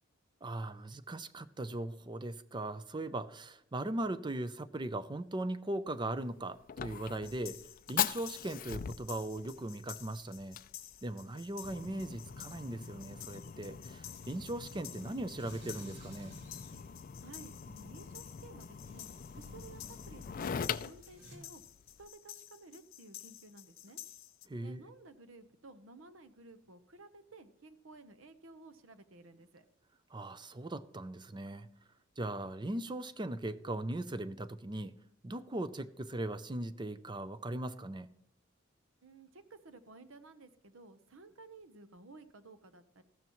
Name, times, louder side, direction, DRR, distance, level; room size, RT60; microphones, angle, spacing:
voice 1, 0.4-7.6 7.9-10.6 11.0-16.4 24.5-24.8 30.1-31.7 32.2-34.9 35.2-38.1, right 1 dB, 20° right, 0.5 m, -39 dB
Fire, 5.9-22.1, left 8 dB, 40° left, 0.4 m, -42 dB
sound 1, 7.2-24.5, left 13 dB, 75° left, 0.8 m, -52 dB
sound 2, 11.7-21.4, right 1 dB, 55° right, 2.7 m, -58 dB
voice 2, 17.2-19.1 19.3-21.6 22.0-24.0 24.6-29.7 39.0-43.0, right 3 dB, 70° right, 0.9 m, -55 dB
14.5 x 12.5 x 3.1 m
head